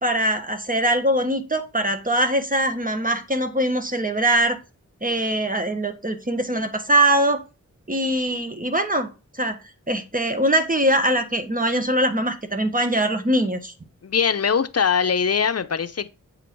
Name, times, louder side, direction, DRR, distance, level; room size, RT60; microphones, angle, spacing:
voice 1, 0.0-4.6 5.0-7.4 7.9-9.1 9.3-9.6 9.9-13.7, right 1 dB, 25° right, 1.4 m, -22 dB
voice 2, 14.0-16.1, left 6 dB, 50° left, 0.7 m, -21 dB
8.4 x 4.9 x 4.6 m
wide cardioid pair, 60°, 31 cm